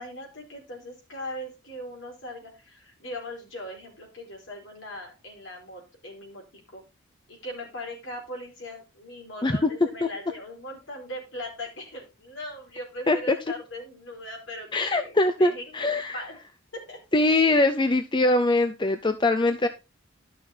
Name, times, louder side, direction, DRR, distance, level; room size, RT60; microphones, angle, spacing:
voice 1, 0.0-6.4 6.7-6.8 7.3-16.4 16.7-17.0, left 1 dB, 60° left, 1 dB, 4.4 m, -39 dB
voice 2, 14.7-16.2 17.1-19.7, left 2 dB, 20° left, 8 dB, 0.5 m, -22 dB
11.5 x 6.1 x 4.2 m, 0.29 s
head